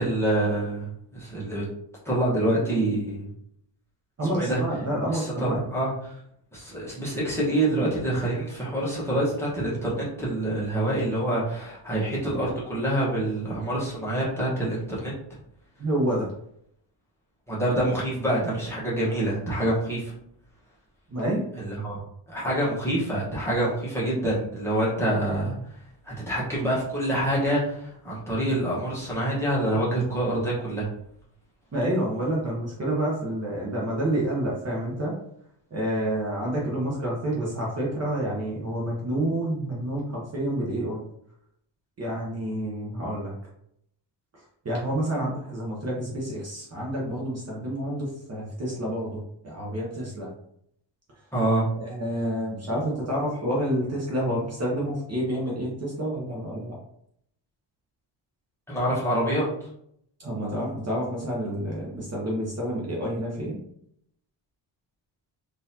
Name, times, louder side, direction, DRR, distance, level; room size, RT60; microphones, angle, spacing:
voice 1, 0.0-1.6 2.0-3.3 4.3-4.6 5.1-6.1 6.5-15.1 17.5-20.1 21.5-22.0 22.3-25.6 26.0-30.9 51.3-51.7 58.7-59.5, right 1 dB, 5° left, -8 dB, 1.1 m, -26 dB
voice 2, 4.2-5.6 15.8-16.3 21.1-21.4 31.7-35.2 35.7-41.0 42.0-43.3 44.3-50.3 51.7-56.8 60.2-63.6, right 1 dB, 30° right, -4 dB, 0.8 m, -28 dB
3.9 x 2.6 x 2.7 m, 0.72 s
cardioid pair, 145°, 48 cm